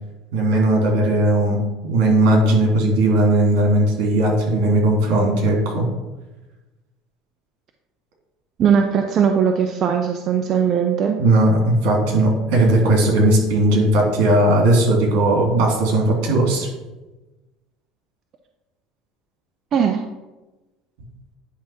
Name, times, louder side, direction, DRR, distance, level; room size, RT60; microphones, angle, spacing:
voice 1, 0.3-5.8 11.2-16.7, right 1 dB, 75° right, 0 dB, 3.1 m, -17 dB
voice 2, 8.6-11.2 19.7-20.0, right 7 dB, 45° right, 5 dB, 0.7 m, -19 dB
10.5 x 3.6 x 5.9 m, 1.1 s
supercardioid pair, 110°, 0 cm